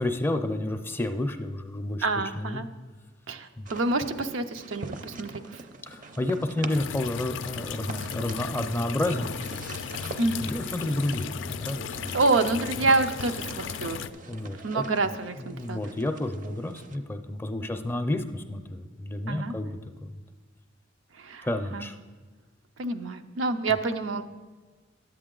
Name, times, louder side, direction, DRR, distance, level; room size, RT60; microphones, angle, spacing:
voice 1, 0.0-2.1 2.4-2.6 3.6-3.7 5.8-9.4 9.9-12.2 14.3-14.8 15.4-20.2 21.4-22.0, left 1 dB, 10° left, 7 dB, 0.4 m, -31 dB
voice 2, 2.0-2.7 3.3-5.7 10.2-10.4 12.1-14.0 14.6-15.8 17.6-17.7 19.3-19.6 21.2-21.5 21.7-21.9 22.8-24.2, right 3 dB, 90° right, 8 dB, 0.5 m, -27 dB
sound 1, 3.6-17.0, right 3 dB, 45° right, 0.5 m, -44 dB
sound 2, 6.7-14.1, left 7 dB, 70° left, 0.4 m, -36 dB
10.5 x 7.8 x 3.8 m, 1.4 s
head